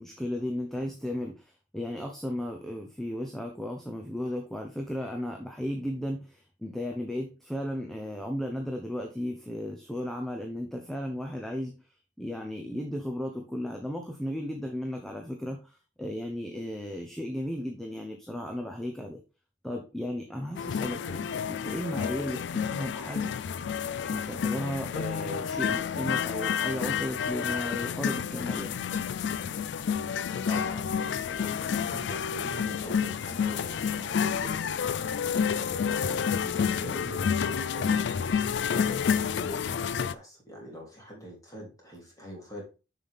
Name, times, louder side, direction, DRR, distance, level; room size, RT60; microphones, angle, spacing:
voice 1, 0.0-11.8 12.2-19.2 19.6-23.3 24.0-28.9, left 1 dB, ahead, 2 dB, 0.8 m, -35 dB
sound 1, 20.6-40.1, left 7 dB, 60° left, 0.3 m, -29 dB
voice 2, 30.5-34.7 35.5-38.3 38.7-42.6, equal, 20° left, -2 dB, 3.1 m, -43 dB
7.0 x 5.7 x 3.5 m, 0.31 s
head